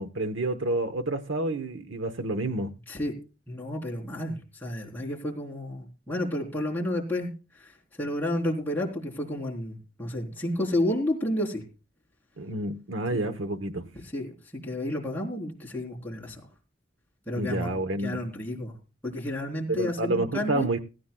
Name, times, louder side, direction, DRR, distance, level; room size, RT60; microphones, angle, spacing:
voice 1, 0.0-2.7 12.4-13.9 17.4-18.2 19.7-20.8, right 2 dB, 80° right, 0.9 m, -29 dB
voice 2, 3.5-7.3 7.6-7.7 8.0-11.6 13.1-13.2 14.1-16.4 17.3-17.7 18.0-18.7 19.0-20.7, left 1 dB, 10° left, 3.6 m, -31 dB
17.0 x 15.5 x 2.3 m
head